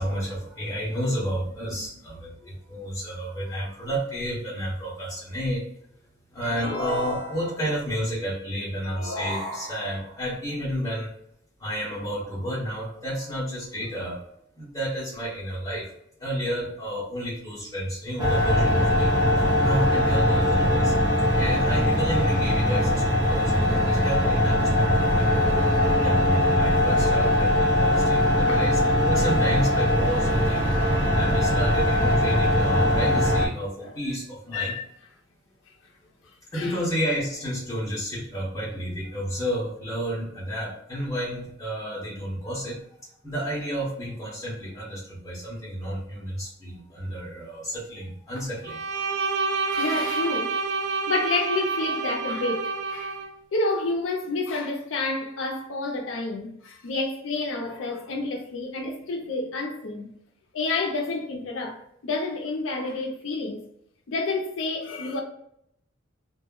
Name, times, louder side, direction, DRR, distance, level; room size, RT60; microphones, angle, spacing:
voice 1, 0.0-5.7 6.3-11.1 11.6-14.2 14.6-15.9 16.2-19.2 19.6-21.0 21.4-25.4 25.8-34.8 36.5-42.8 43.2-48.8, equal, 15° left, 0.8 m, -31 dB
sound 1, 6.4-7.8 8.8-10.2, equal, 45° left, 0.9 m, -34 dB
sound 2, 18.2-33.5, left 1 dB, 20° right, 0.7 m, -21 dB
voice 2, 34.5-34.8 36.5-36.8 49.7-50.5 51.1-53.1 53.5-60.1 60.5-63.6 64.1-65.2, left 3 dB, 75° left, 0.5 m, -29 dB
Bowed string instrument, 48.6-53.3, right 4 dB, 60° right, 0.4 m, -28 dB
2.2 x 2.0 x 3.6 m
head